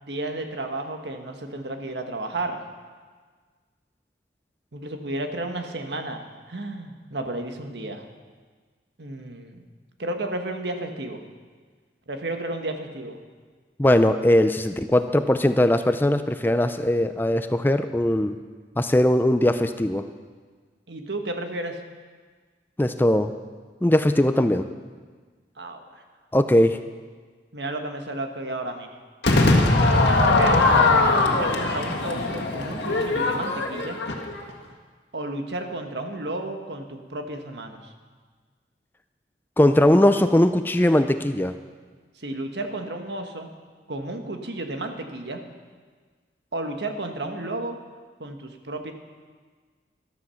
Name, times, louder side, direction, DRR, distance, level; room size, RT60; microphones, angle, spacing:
voice 1, 0.0-2.6 4.7-8.1 9.0-9.6 10.0-11.2 12.1-13.2 20.9-21.8 25.6-26.0 27.5-28.9 30.2-30.8 31.2-34.0 35.1-37.9 42.2-43.5 43.9-45.4 46.5-47.8 48.2-48.9, right 2 dB, 80° right, 5 dB, 1.5 m, -32 dB
voice 2, 13.8-18.4 18.8-20.1 22.8-23.3 23.8-24.7 26.3-26.8 39.6-41.6, left 1 dB, 10° left, 9 dB, 0.4 m, -20 dB
Crowd / Fireworks, 29.2-34.5, left 2 dB, 80° left, 1.7 m, -20 dB
14.0 x 12.5 x 5.8 m, 1.5 s
head